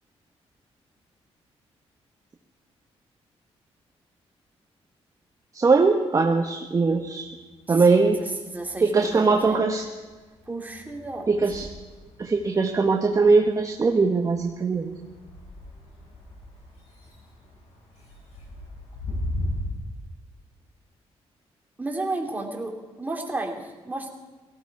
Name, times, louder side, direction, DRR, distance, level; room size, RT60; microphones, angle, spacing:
voice 1, 5.5-7.3 7.7-8.2 8.8-9.8 11.3-11.7 12.2-14.9, right 4 dB, 30° right, 3 dB, 1.2 m, -21 dB
sound 1, 6.6-7.5 7.9-19.6, left 1 dB, 90° left, 6.4 m, -39 dB
voice 2, 7.7-9.6 10.5-11.3 21.8-24.1, right 2 dB, 15° right, 1 dB, 2.6 m, -33 dB
17.5 x 15.5 x 4.7 m, 1.3 s
cardioid pair, 100°, 11 cm